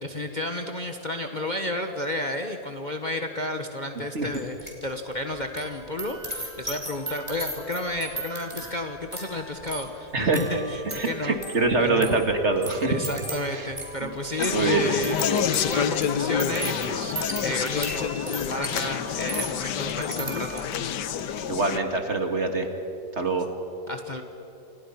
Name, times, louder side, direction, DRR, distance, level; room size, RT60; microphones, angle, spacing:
voice 1, 0.0-11.4 11.8-12.2 12.9-20.6 23.9-24.2, left 1 dB, 30° left, 5 dB, 1.3 m, -32 dB
sound 1, 4.3-4.9 5.1-20.9 21.3-21.6, right 1 dB, 15° right, 4.6 m, -37 dB
voice 2, 10.9-12.9 13.5-13.7 14.0-14.1 14.5-14.9 21.5-22.7 23.2-23.5, right 3 dB, 40° right, 5 dB, 2.2 m, -24 dB
Conversation, 14.4-21.8, left 8 dB, 80° left, 1.5 m, -28 dB
29.0 x 27.5 x 5.8 m, 2.8 s
omnidirectional pair, 1.8 m